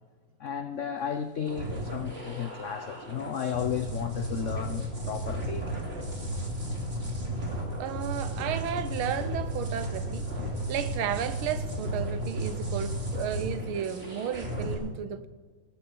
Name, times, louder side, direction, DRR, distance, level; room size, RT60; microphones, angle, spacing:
voice 1, 0.4-5.8, left 8 dB, 90° left, 0.6 m, -33 dB
sound 1, 1.5-14.7, right 1 dB, 30° right, 2.8 m, -34 dB
voice 2, 7.8-10.3 10.7-15.3, right 9 dB, 90° right, 1.7 m, -33 dB
18.5 x 8.5 x 7.1 m
omnidirectional pair, 2.2 m